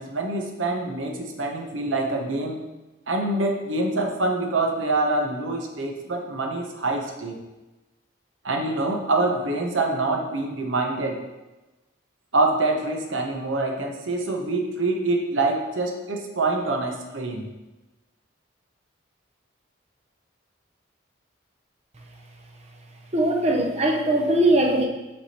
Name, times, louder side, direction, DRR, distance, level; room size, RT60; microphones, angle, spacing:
voice 1, 0.0-2.6 3.1-7.4 8.4-11.2 12.3-17.5, right 2 dB, 75° right, 2 dB, 0.9 m, -25 dB
voice 2, 23.1-24.9, right 1 dB, 30° right, 2 dB, 0.7 m, -20 dB
8.0 x 3.5 x 4.2 m, 1.1 s
head